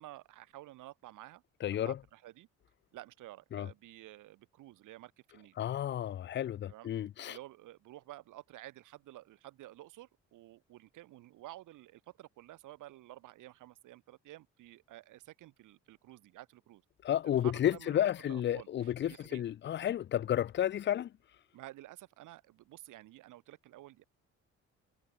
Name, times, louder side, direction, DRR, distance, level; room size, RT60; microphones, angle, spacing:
voice 1, 0.0-1.4 1.8-2.5 2.9-5.6 6.7-6.9 7.3-16.8 17.3-19.4 21.5-24.0, right 16 dB, 90° right, 4.5 m, -52 dB
voice 2, 1.6-2.0 3.5-3.7 5.6-7.4 17.0-21.1, left 11 dB, 40° left, 0.4 m, -32 dB
cardioid pair, 90°, 30 cm